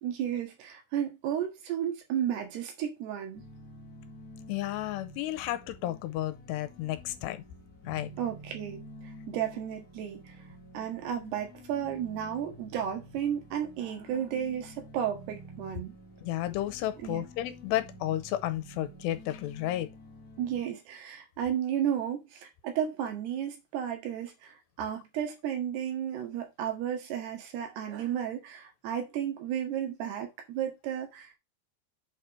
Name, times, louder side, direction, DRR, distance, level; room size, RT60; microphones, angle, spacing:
voice 1, 0.0-3.4 8.2-10.4 10.7-16.0 17.0-17.3 20.4-31.4, right 9 dB, 75° right, 3.5 m, -33 dB
sound 1, 3.3-20.6, left 1 dB, 75° left, 0.8 m, -50 dB
voice 2, 4.5-7.4 7.9-8.1 16.2-19.9, left 14 dB, 90° left, 2.8 m, -32 dB
7.7 x 4.5 x 4.8 m
omnidirectional pair, 4.9 m